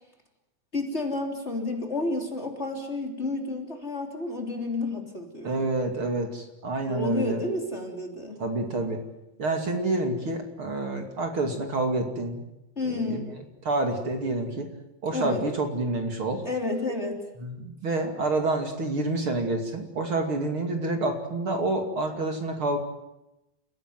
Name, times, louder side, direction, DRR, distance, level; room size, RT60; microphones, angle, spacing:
voice 1, 0.7-5.5 6.9-8.4 12.7-13.3 15.1-15.4 16.4-17.2, left 2 dB, 20° left, 2 dB, 3.4 m, -30 dB
voice 2, 5.4-7.4 8.4-9.0 9.4-12.4 12.8-13.2 13.6-14.7 15.0-16.4 17.4-22.8, right 2 dB, 45° right, 4 dB, 3.4 m, -28 dB
30.0 x 16.5 x 9.4 m, 0.92 s
omnidirectional pair, 3.3 m